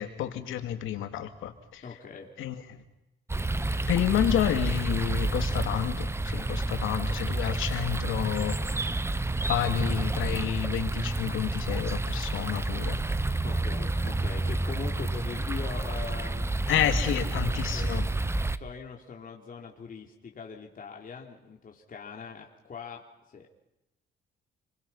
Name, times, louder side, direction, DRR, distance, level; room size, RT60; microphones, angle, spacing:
voice 1, 0.0-1.8 2.4-2.8 3.9-8.8 9.5-13.0 16.7-18.1, left 10 dB, 85° left, 7 dB, 2.7 m, -30 dB
voice 2, 1.8-2.3 13.4-23.0 23.3-23.6, left 5 dB, 45° left, 0 dB, 3.7 m, -42 dB
sound 1, 3.3-18.6, right 2 dB, 15° right, 1.0 m, -29 dB
29.5 x 23.5 x 5.8 m, 0.93 s
cardioid pair, 90°, 20 cm